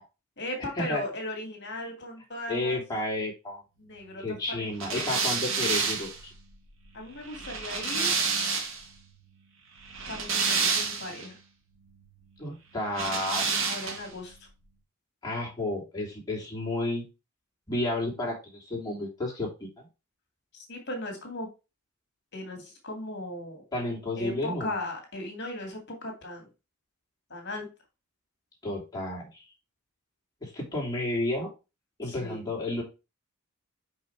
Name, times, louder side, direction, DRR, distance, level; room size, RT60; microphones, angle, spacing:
voice 1, 0.4-2.8 3.8-5.2 6.9-8.1 10.1-11.4 13.7-14.5 20.5-21.5 22.3-23.6 24.2-26.5 27.3-27.7 32.0-32.5, left 1 dB, 50° left, 2 dB, 2.4 m, -37 dB
voice 2, 2.5-3.6 4.2-6.3 12.4-13.6 15.2-17.0 17.7-19.9 23.7-24.7 28.6-29.4 30.4-31.5 32.0-32.8, left 2 dB, 15° left, -3 dB, 2.9 m, -32 dB
sound 1, 4.8-8.9 9.8-11.3 12.9-14.2, right 5 dB, 60° right, 1.6 m, -29 dB
5.5 x 5.5 x 4.5 m, 0.28 s
head